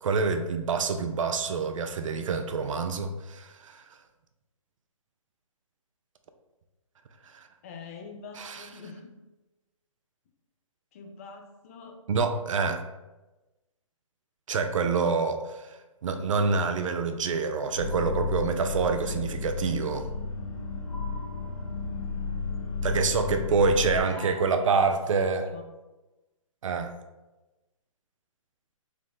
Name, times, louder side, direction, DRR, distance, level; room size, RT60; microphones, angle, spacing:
voice 1, 0.0-3.8 7.3-7.5 8.4-8.6 12.1-12.8 14.5-20.1 22.8-25.4 26.6-26.9, right 4 dB, 65° right, 7 dB, 0.4 m, -27 dB
voice 2, 7.6-9.2 10.9-12.0 23.6-25.7, left 4 dB, 25° left, 4 dB, 0.3 m, -44 dB
sound 1, 17.8-24.0, left 4 dB, 85° left, 0.6 m, -33 dB
sound 2, 17.8-19.1 20.9-22.1 24.1-25.3, right 3 dB, 5° right, 0.8 m, -48 dB
3.3 x 2.0 x 3.7 m, 1.1 s
hypercardioid pair, 145°, 18 cm